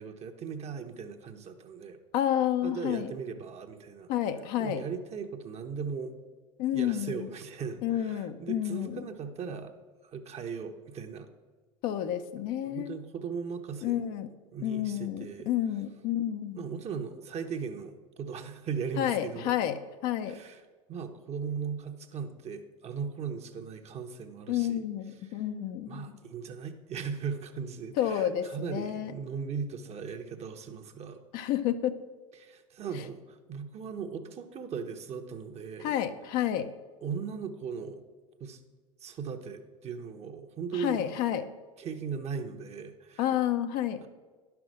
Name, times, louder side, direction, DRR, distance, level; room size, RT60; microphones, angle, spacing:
voice 1, 0.0-2.0 2.6-4.1 4.6-6.1 6.7-9.7 10.0-11.3 12.6-14.0 14.5-15.5 16.5-19.6 20.3-20.6 20.9-24.8 25.2-25.4 25.9-31.2 32.4-36.0 37.0-38.0 38.4-38.6 39.0-41.0 41.8-43.3 44.0-44.1, right 6 dB, 40° right, 6 dB, 1.1 m, -38 dB
voice 2, 2.1-3.1 4.1-4.8 6.6-7.3 7.8-9.0 11.8-13.0 13.8-14.3 14.6-16.7 19.0-20.3 24.5-26.1 28.0-29.1 31.3-32.0 35.8-36.7 40.7-41.4 43.2-44.1, left 11 dB, 55° left, 9 dB, 0.7 m, -30 dB
10.5 x 5.9 x 6.5 m, 1.4 s
hypercardioid pair, 80°, 17 cm